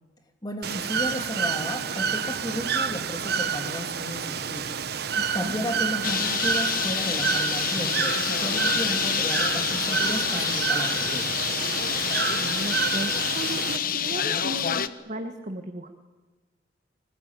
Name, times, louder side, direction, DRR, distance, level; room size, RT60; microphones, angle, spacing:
voice 1, 0.4-4.7 5.3-11.3, equal, 20° left, 4 dB, 3.1 m, -33 dB
Bird / Water, 0.6-13.8, right 6 dB, 60° right, 1.0 m, -29 dB
voice 2, 5.1-5.6 8.8-9.0 12.0-15.9, right 1 dB, 40° right, 6 dB, 1.6 m, -36 dB
Bird, 6.0-14.9, left 8 dB, 50° left, 1.0 m, -27 dB
25.0 x 20.5 x 9.2 m, 1.3 s
head